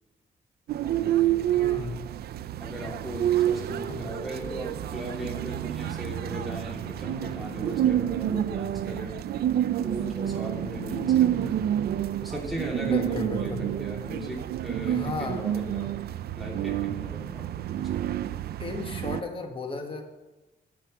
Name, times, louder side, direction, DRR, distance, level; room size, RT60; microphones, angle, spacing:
sound 1, 0.7-19.2, right 11 dB, 75° right, 0.4 m, -28 dB
voice 1, 0.8-1.5 2.6-9.1 9.8-11.7 12.2-15.9 16.3-18.0, equal, ahead, -3 dB, 2.9 m, -38 dB
voice 2, 1.5-2.1 3.9-4.0 12.8-13.6 14.9-15.4 18.6-20.0, left 4 dB, 35° left, 4 dB, 1.4 m, -34 dB
10.5 x 5.7 x 7.5 m, 1.1 s
cardioid pair, 130°, 16 cm